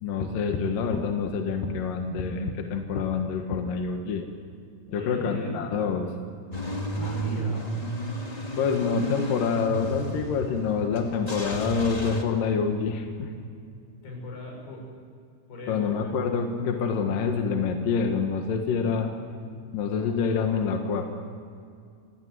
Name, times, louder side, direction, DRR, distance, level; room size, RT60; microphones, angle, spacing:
voice 1, 0.0-4.2 4.9-6.1 8.6-13.3 15.7-19.1 19.7-21.1, left 5 dB, 65° left, 4 dB, 3.0 m, -27 dB
voice 2, 4.9-5.6 7.0-7.7 14.0-14.9 15.5-16.1, left 1 dB, 85° left, 0 dB, 8.1 m, -38 dB
Car / Engine starting / Idling, 6.5-12.2, right 1 dB, 25° left, 0.8 m, -32 dB
27.5 x 17.0 x 9.5 m, 2.3 s
omnidirectional pair, 4.6 m